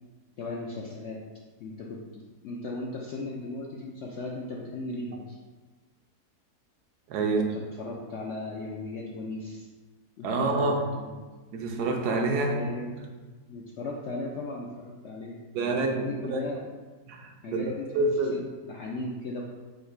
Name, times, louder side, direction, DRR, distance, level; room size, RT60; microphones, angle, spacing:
voice 1, 0.4-1.2 1.6-5.4 7.2-9.7 10.2-11.2 12.2-13.0 13.5-16.6 17.4-19.4, left 2 dB, 75° left, -2 dB, 0.6 m, -37 dB
voice 2, 7.1-7.4 10.2-10.8 11.5-12.6 15.5-16.4 17.1-18.4, right 3 dB, 80° right, 2 dB, 1.2 m, -27 dB
4.0 x 2.8 x 4.4 m, 1.3 s
omnidirectional pair, 1.7 m